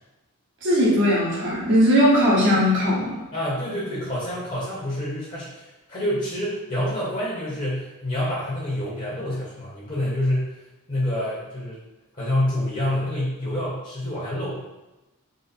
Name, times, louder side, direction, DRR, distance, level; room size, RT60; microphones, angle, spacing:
voice 1, 0.6-3.2, equal, 55° right, -6 dB, 1.1 m, -19 dB
voice 2, 3.3-10.6 10.9-11.8 12.1-14.6, left 1 dB, 35° left, -7 dB, 1.0 m, -27 dB
3.8 x 2.0 x 4.1 m, 1.0 s
head